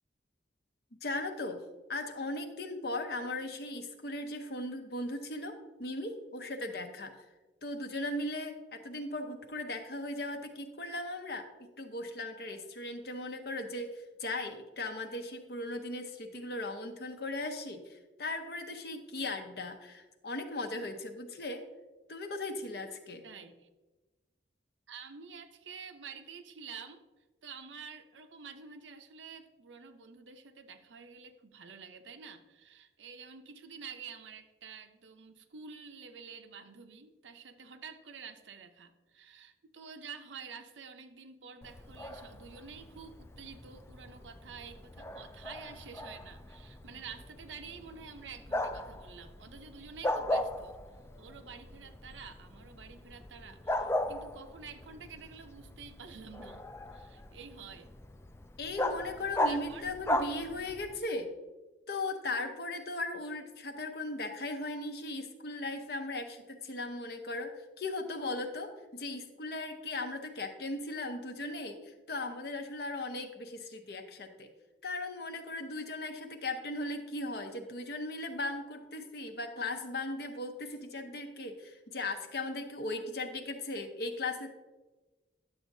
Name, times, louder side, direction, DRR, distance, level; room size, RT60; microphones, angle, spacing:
voice 1, 1.0-1.6 1.9-7.1 7.6-11.5 11.8-21.6 22.1-23.2 58.6-61.3 61.9-74.5 74.8-84.5, left 2 dB, 60° left, 5 dB, 0.9 m, -38 dB
voice 2, 23.2-23.7 24.9-27.0 27.4-50.8 51.2-56.6 56.9-57.9 59.4-59.9, right 6 dB, 90° right, 7 dB, 0.7 m, -49 dB
Bark, 41.6-61.0, left 1 dB, 15° left, 0.3 m, -38 dB
10.5 x 7.2 x 2.7 m, 1.2 s
head